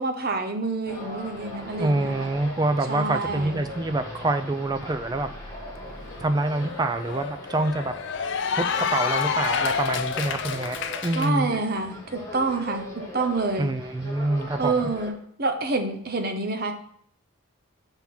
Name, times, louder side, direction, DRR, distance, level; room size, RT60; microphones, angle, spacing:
voice 1, 0.0-2.3 2.9-3.6 11.1-12.9 13.1-13.7 14.6-16.7, right 3 dB, 45° right, 6 dB, 0.7 m, -27 dB
sound 1, 0.8-15.1, left 1 dB, 15° left, 1.4 m, -40 dB
voice 2, 1.8-5.3 6.2-7.9 8.5-8.6 8.9-10.8 11.0-11.5 13.6-14.9, right 2 dB, 20° right, 9 dB, 0.3 m, -26 dB
Cheering / Applause, 5.4-5.5 5.9-11.3, left 6 dB, 55° left, 0.4 m, -29 dB
5.9 x 3.6 x 5.8 m, 0.64 s
head